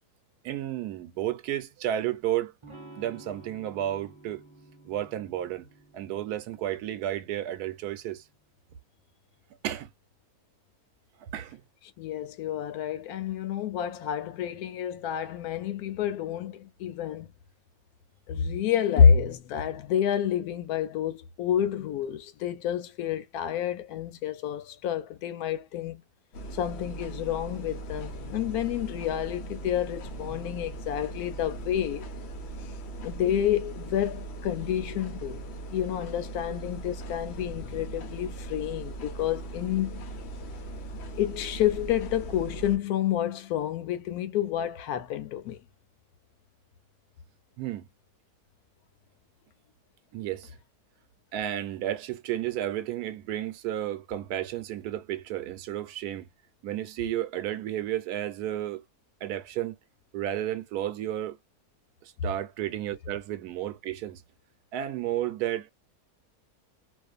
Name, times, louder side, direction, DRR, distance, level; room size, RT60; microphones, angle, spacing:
voice 1, 0.4-2.5 3.0-4.4 4.8-5.7 5.9-8.2 9.6-9.9 11.3-11.6 47.6-47.9 50.1-50.5 51.3-56.3 56.6-58.8 59.2-59.8 60.1-61.4 62.0-64.2 64.7-65.7, right 12 dB, 90° right, 1.1 m, -32 dB
Electric guitar / Strum, 2.6-8.3, right 2 dB, 30° right, 0.6 m, -52 dB
voice 2, 12.0-17.3 18.3-26.0 26.5-32.1 33.0-35.4 35.7-40.0 41.2-45.6, left 9 dB, 75° left, 1.0 m, -28 dB
sound 1, 26.3-42.8, right 2 dB, 60° left, 0.7 m, -39 dB
2.6 x 2.4 x 2.3 m
omnidirectional pair, 1.6 m